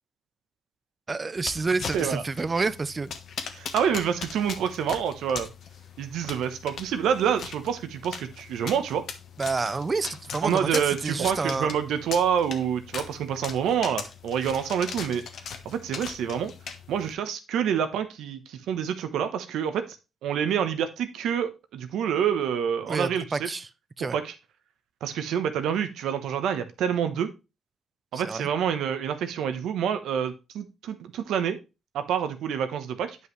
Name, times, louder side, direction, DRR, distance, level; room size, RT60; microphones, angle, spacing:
voice 1, 1.1-3.1 9.4-11.8 22.9-23.7 24.0-24.2 28.1-28.5, right 4 dB, 30° right, 0.6 m, -29 dB
sound 1, 1.4-17.1, left 6 dB, 65° left, 1.2 m, -40 dB
voice 2, 3.5-5.5 6.0-9.1 10.4-15.2 15.6-16.5 16.9-19.8 20.2-23.5 24.0-24.3 25.0-27.3 28.1-31.6 31.9-33.2, right 8 dB, 85° right, 1.1 m, -27 dB
9.3 x 5.5 x 3.2 m
cardioid pair, 85°, 0 cm